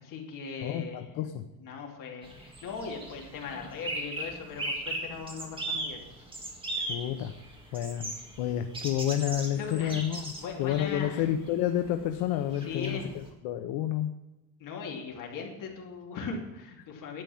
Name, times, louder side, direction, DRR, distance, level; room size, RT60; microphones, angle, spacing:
voice 1, 0.0-6.1 9.6-11.3 12.6-13.1 14.6-17.2, left 5 dB, 50° left, 0 dB, 2.8 m, -39 dB
voice 2, 0.6-1.4 6.9-7.3 7.7-8.1 8.4-10.3 10.6-14.1, left 11 dB, 85° left, 6 dB, 0.9 m, -30 dB
sound 1, 2.2-13.3, right 2 dB, 15° right, 1.8 m, -39 dB
11.5 x 8.6 x 7.0 m, 0.98 s
cardioid pair, 175°, 41 cm